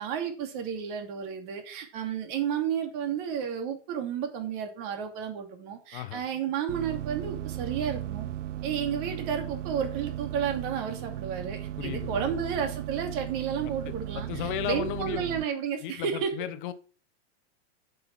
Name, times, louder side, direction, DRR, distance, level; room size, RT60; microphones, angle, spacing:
voice 1, 0.0-8.3 8.6-16.3, right 7 dB, 40° right, 2.6 m, -32 dB
voice 2, 5.9-6.2 11.8-12.3 13.6-13.7 14.1-15.3 15.8-16.7, left 11 dB, 45° left, 1.0 m, -35 dB
sound 1, 6.7-15.4, right 13 dB, 75° right, 0.8 m, -36 dB
7.8 x 6.9 x 5.8 m
supercardioid pair, 160°, 37 cm